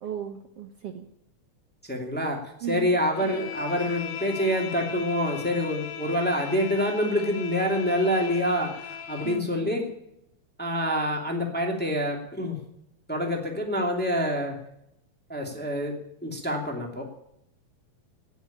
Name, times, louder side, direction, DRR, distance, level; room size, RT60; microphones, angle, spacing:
voice 1, 0.0-1.1 2.6-2.9 9.2-9.7, right 9 dB, 60° right, 5 dB, 1.9 m, -36 dB
voice 2, 1.9-2.4 2.7-8.7 9.1-9.9 10.6-12.6 13.1-14.5 15.3-15.9 16.2-17.0, equal, 5° left, 1 dB, 2.1 m, -26 dB
Bowed string instrument, 3.1-9.5, left 8 dB, 85° left, 2.6 m, -38 dB
18.5 x 7.2 x 8.6 m, 0.80 s
omnidirectional pair, 3.5 m